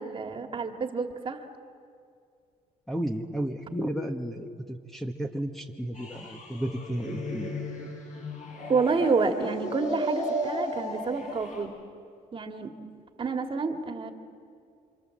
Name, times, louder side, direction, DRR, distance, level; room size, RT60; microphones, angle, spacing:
voice 1, 0.0-1.5 8.7-11.7 12.3-12.7 13.2-14.1, right 4 dB, 35° right, 5 dB, 2.1 m, -28 dB
voice 2, 2.9-7.5, right 1 dB, ahead, 0 dB, 1.4 m, -33 dB
sound 1, 5.9-11.6, equal, 50° left, 7.5 m, -35 dB
28.0 x 26.0 x 7.7 m, 2.4 s
cardioid pair, 110°, 15 cm